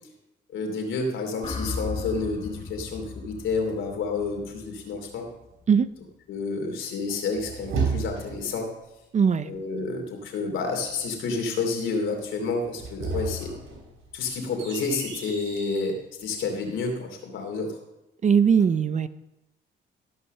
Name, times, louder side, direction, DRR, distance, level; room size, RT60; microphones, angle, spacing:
voice 1, 0.5-5.3 6.3-8.7 9.4-13.5 14.1-17.7, left 4 dB, 80° left, 2 dB, 2.8 m, -29 dB
sound 1, 1.4-5.6, left 4 dB, 30° left, 1.5 m, -37 dB
sound 2, 7.1-8.6 12.6-15.9, right 4 dB, 85° right, 3.8 m, -33 dB
voice 2, 9.1-9.5 18.2-19.1, right 7 dB, 35° right, 14 dB, 0.6 m, -20 dB
14.0 x 5.6 x 6.6 m, 0.92 s
cardioid pair, 90°, 20 cm